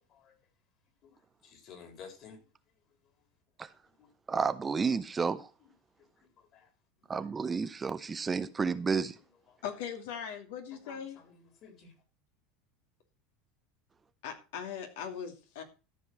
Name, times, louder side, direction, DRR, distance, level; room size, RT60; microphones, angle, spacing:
voice 1, 1.4-2.4 4.0-4.1 6.4-6.7 10.8-11.9, left 6 dB, 50° left, 3.9 m, -52 dB
voice 2, 4.3-5.5 7.1-9.2, right 5 dB, 20° right, 0.8 m, -31 dB
voice 3, 9.6-11.2 14.2-15.6, left 8 dB, 80° left, 2.7 m, -40 dB
13.5 x 5.4 x 6.3 m
supercardioid pair, 105°, 0 cm